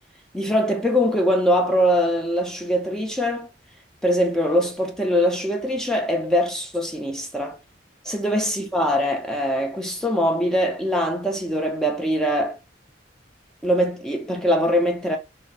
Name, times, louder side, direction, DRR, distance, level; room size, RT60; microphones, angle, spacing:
voice 1, 0.3-3.5 4.0-7.6 8.0-12.6 13.6-15.2, equal, 5° left, 0.5 m, -22 dB
2.6 x 2.1 x 3.9 m
head